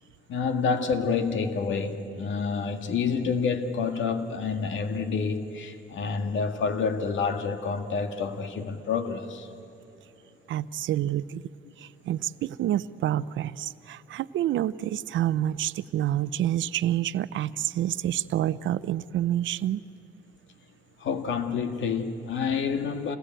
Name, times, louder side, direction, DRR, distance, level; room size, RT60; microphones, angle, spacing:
voice 1, 0.3-9.5 21.0-23.2, left 5 dB, 75° left, 1.9 m, -28 dB
voice 2, 10.5-11.5 11.8-19.8, right 12 dB, 70° right, 0.6 m, -28 dB
27.5 x 20.5 x 9.1 m
cardioid pair, 90°, 20 cm